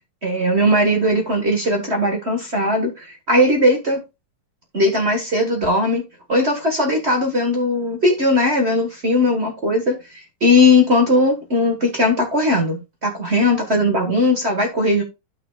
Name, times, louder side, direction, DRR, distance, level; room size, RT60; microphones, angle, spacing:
voice 1, 0.2-4.0 4.7-6.0 6.3-15.0, left 1 dB, 35° right, 2 dB, 1.6 m, -18 dB
11.5 x 6.1 x 2.4 m, 0.25 s
omnidirectional pair, 2.4 m